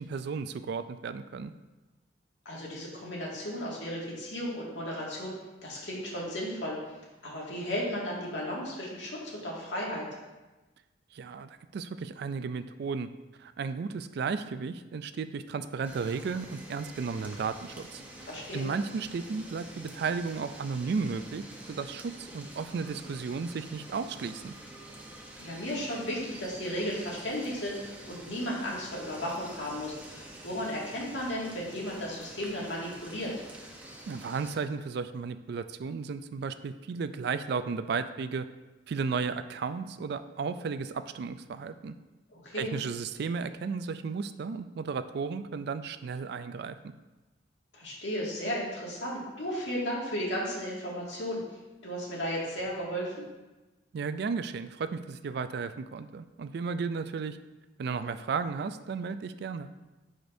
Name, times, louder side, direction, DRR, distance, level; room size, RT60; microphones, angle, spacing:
voice 1, 0.0-1.5 11.1-13.1 13.4-18.3 18.5-24.5 34.1-38.5 38.9-41.9 42.5-46.9 53.9-57.4 57.8-59.7, right 5 dB, 60° right, 12 dB, 0.4 m, -34 dB
voice 2, 2.5-5.3 5.6-6.8 7.2-10.1 18.3-18.7 25.4-33.3 42.3-42.7 47.7-51.4 51.8-53.3, equal, 85° left, -4 dB, 2.1 m, -34 dB
sound 1, 15.8-34.6, right 1 dB, 10° right, 0.8 m, -47 dB
10.0 x 5.1 x 2.7 m, 1.1 s
head